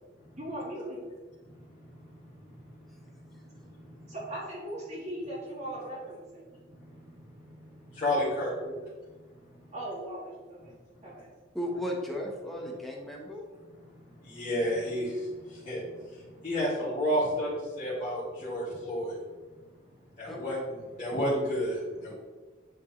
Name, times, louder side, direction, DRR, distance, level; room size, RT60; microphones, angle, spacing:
voice 1, 0.4-1.0 4.1-6.4 8.6-8.7 9.7-10.7 11.0-11.3, right 1 dB, 35° right, -6 dB, 1.8 m, -38 dB
voice 2, 2.0-2.9 3.5-4.1 6.7-7.5 7.9-8.5 14.0-19.2 20.2-22.1, equal, 40° left, -12 dB, 2.4 m, -32 dB
voice 3, 11.5-13.4 20.3-20.5, equal, ahead, -2 dB, 1.1 m, -35 dB
10.5 x 4.4 x 3.2 m, 1.3 s
head